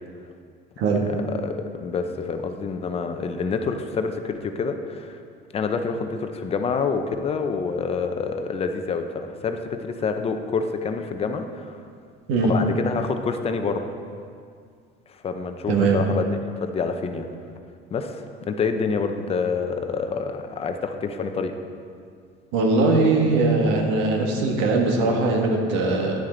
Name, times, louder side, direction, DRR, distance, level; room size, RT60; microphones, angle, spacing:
voice 1, 1.3-5.2 5.5-11.8 12.4-13.8 15.2-16.3 16.6-17.3 17.9-21.5, left 5 dB, 30° left, 6 dB, 0.6 m, -27 dB
voice 2, 15.7-16.0 22.5-26.1, right 3 dB, 85° right, 1 dB, 1.5 m, -20 dB
10.5 x 7.5 x 3.8 m, 2.2 s
cardioid pair, 130°, 19 cm